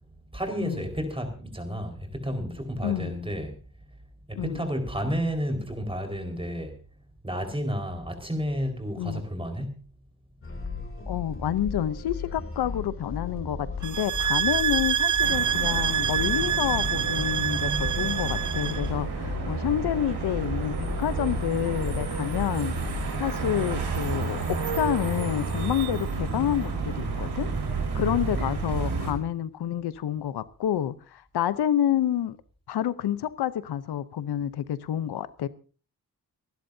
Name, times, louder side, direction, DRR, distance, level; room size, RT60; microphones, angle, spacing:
voice 1, 0.3-3.6 4.3-6.8 7.2-9.8 28.1-28.5, equal, 15° right, 4.6 m, -31 dB
voice 2, 2.8-3.1 4.4-4.7 9.0-9.2 11.1-22.8 23.2-27.5 27.9-32.4 32.7-35.5, left 10 dB, 90° left, 0.8 m, -28 dB
sound 1, 10.4-23.3, left 4 dB, 35° left, 2.5 m, -36 dB
sound 2, 13.8-18.9, right 9 dB, 50° right, 0.7 m, -26 dB
sound 3, 15.2-29.1, right 4 dB, 90° right, 4.5 m, -31 dB
30.0 x 11.5 x 2.7 m
cardioid pair, 75°, 38 cm